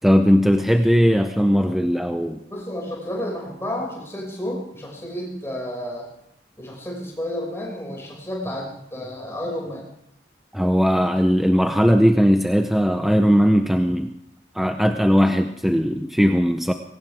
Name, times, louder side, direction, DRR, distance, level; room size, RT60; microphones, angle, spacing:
voice 1, 0.0-2.4 10.5-14.1 14.5-16.7, equal, ahead, 5 dB, 0.6 m, -18 dB
voice 2, 2.5-6.1 6.6-9.9, left 1 dB, 15° left, -2 dB, 5.8 m, -31 dB
22.0 x 18.5 x 3.5 m, 0.75 s
head